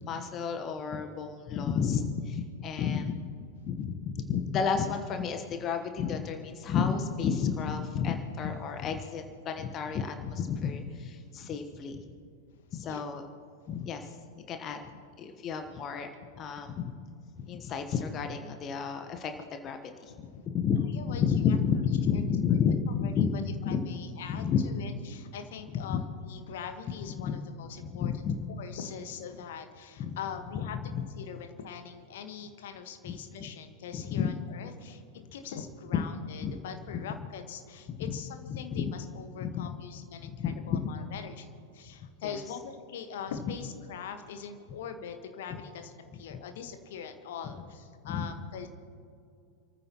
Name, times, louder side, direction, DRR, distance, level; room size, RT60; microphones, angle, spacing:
voice 1, 0.1-3.1 3.6-12.1 12.7-13.2 13.7-14.2 14.5-14.8 15.2-16.1 16.4-16.9 17.4-23.8 24.3-24.6 25.9-26.0 27.2-27.3 27.8-28.5 30.0-30.2 30.9-31.0 33.0-33.2 33.9-34.3 35.9-36.0 36.4-36.5 37.9-38.1 38.5-38.8 39.4-39.7 40.4-40.9 42.2-42.3 48.0-48.3, left 7 dB, 30° left, 6 dB, 1.2 m, -31 dB
voice 2, 12.5-13.1 14.9-15.0 20.1-20.4 20.8-21.6 21.9-22.2 22.5-22.6 22.9-28.3 28.6-30.8 31.2-48.7, left 7 dB, 55° left, 7 dB, 1.4 m, -43 dB
29.0 x 14.5 x 3.0 m, 2.4 s
figure-of-eight pair, 90°, 0 cm